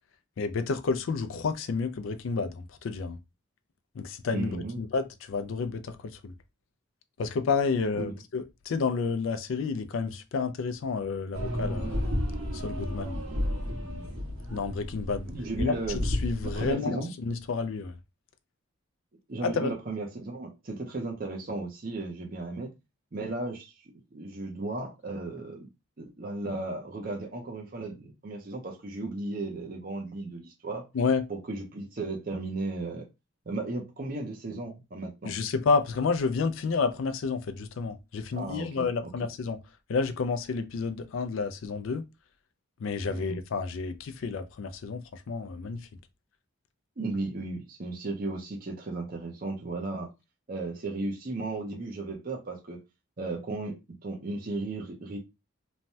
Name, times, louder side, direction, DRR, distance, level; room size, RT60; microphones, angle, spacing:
voice 1, 0.4-3.2 4.0-6.0 6.2-6.3 7.2-12.0 12.6-13.2 14.5-15.3 15.6-17.9 19.4-19.7 30.9-31.2 35.2-39.6 39.9-42.0 42.8-45.8, left 4 dB, 70° left, 0.4 m, -30 dB
voice 2, 4.3-4.8 7.9-8.2 15.2-16.0 16.4-17.1 19.3-22.7 23.1-25.7 26.0-30.8 31.3-33.1 33.5-35.4 38.3-39.1 43.1-43.4 47.0-50.1 50.5-52.8 53.2-55.2, right 2 dB, 45° right, 0.6 m, -35 dB
sound 1, 11.3-16.7, left 1 dB, 80° right, 1.4 m, -32 dB
3.2 x 2.1 x 2.6 m
head